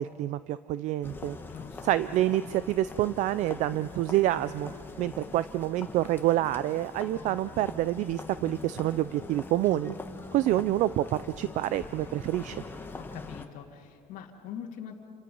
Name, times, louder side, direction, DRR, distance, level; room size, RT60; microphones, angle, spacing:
voice 1, 0.0-1.4 1.8-4.7 5.0-9.9 10.3-12.6, right 14 dB, 50° right, 15 dB, 0.5 m, -27 dB
sound 1, 1.0-13.5, left 3 dB, 15° left, 1.1 m, -43 dB
voice 2, 1.4-1.9 13.0-15.0, left 8 dB, 55° left, -1 dB, 2.2 m, -43 dB
29.0 x 26.5 x 5.4 m, 2.4 s
cardioid pair, 150°, 16 cm